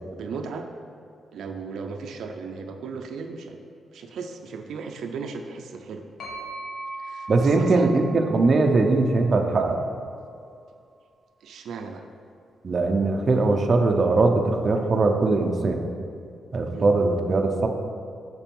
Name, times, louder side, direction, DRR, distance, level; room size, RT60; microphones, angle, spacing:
voice 1, 0.1-0.7 1.3-3.6 3.9-6.0 7.0-7.9 11.4-12.1 16.7-16.9, right 5 dB, 85° right, 4 dB, 0.6 m, -36 dB
sound 1, 6.2-10.0, right 2 dB, 85° left, 2.0 m, -40 dB
voice 2, 7.3-9.8 12.6-15.8 16.5-17.7, right 3 dB, 35° right, 3 dB, 0.6 m, -21 dB
7.3 x 6.1 x 5.4 m, 2.3 s
wide cardioid pair, 170°, 0 cm